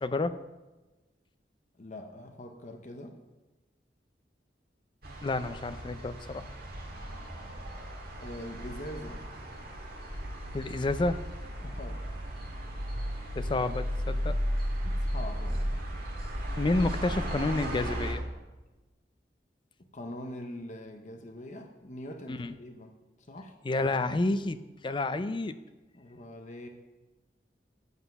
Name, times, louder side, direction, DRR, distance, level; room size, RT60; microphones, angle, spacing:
voice 1, 0.0-0.4 5.2-6.4 10.5-11.2 13.4-14.4 16.6-18.2 22.3-22.5 23.6-24.6 24.8-25.5, left 2 dB, 30° left, 12 dB, 0.4 m, -29 dB
voice 2, 1.7-3.2 8.1-9.2 11.6-12.0 14.8-15.8 19.8-23.6 25.9-26.7, left 1 dB, 45° left, 4 dB, 0.8 m, -43 dB
sound 1, 5.0-18.1, equal, 55° right, 1.9 m, -35 dB
8.1 x 7.9 x 5.3 m, 1.1 s
head